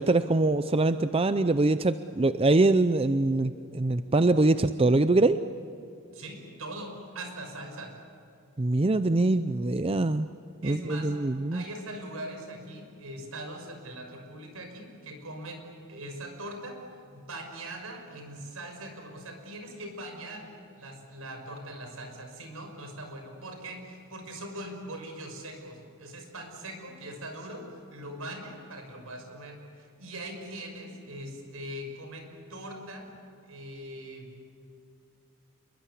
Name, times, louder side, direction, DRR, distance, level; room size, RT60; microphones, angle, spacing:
voice 1, 0.0-5.4 8.6-10.3 10.6-11.6, right 2 dB, 25° right, 11 dB, 0.5 m, -23 dB
voice 2, 6.1-7.9 10.6-11.1 11.5-16.7 17.1-20.5 20.7-33.0 33.5-34.3, right 1 dB, 75° right, 4 dB, 5.9 m, -41 dB
27.5 x 23.0 x 8.4 m, 2.6 s
head